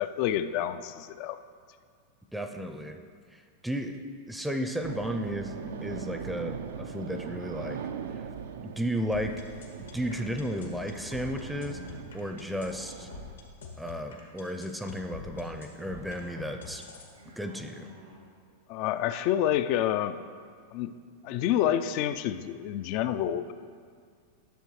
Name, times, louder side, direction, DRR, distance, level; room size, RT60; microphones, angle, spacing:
voice 1, 0.0-1.4 18.7-20.2 20.7-21.0 21.2-23.5, left 11 dB, 50° left, 11 dB, 0.4 m, -28 dB
voice 2, 2.3-3.0 3.3-4.0 4.3-7.8 8.2-8.3 8.6-9.3 9.9-13.1 13.8-16.8 17.3-17.9, equal, 5° right, 5 dB, 0.5 m, -34 dB
sound 1, 4.8-13.3, right 7 dB, 65° right, 0.4 m, -41 dB
sound 2, 9.1-17.1, left 5 dB, 80° left, 1.5 m, -45 dB
sound 3, 9.8-14.0 15.8-16.7 17.0-18.2, right 1 dB, 85° right, 2.3 m, -51 dB
11.0 x 6.7 x 3.2 m, 2.1 s
figure-of-eight pair, 95°, 0 cm